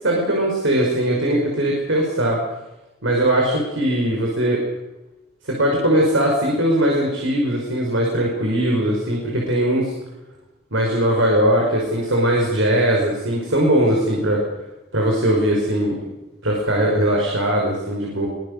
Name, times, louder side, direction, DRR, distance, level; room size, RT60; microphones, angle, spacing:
voice 1, 0.0-2.4 3.0-4.6 5.4-9.9 10.7-14.4 14.9-16.0 16.4-18.3, right 1 dB, 85° right, -1 dB, 5.5 m, -20 dB
23.0 x 22.5 x 6.8 m, 1.0 s
head